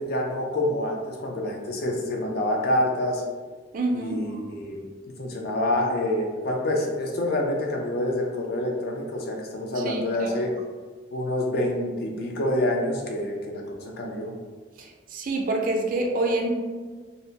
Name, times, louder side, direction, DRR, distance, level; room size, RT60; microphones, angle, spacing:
voice 1, 0.0-3.2 3.9-10.5 11.1-14.3, left 1 dB, 55° left, 0 dB, 0.4 m, -27 dB
voice 2, 3.7-4.4 9.8-10.3 14.8-16.5, right 2 dB, 50° right, 2 dB, 0.4 m, -27 dB
2.6 x 2.1 x 2.7 m, 1.5 s
head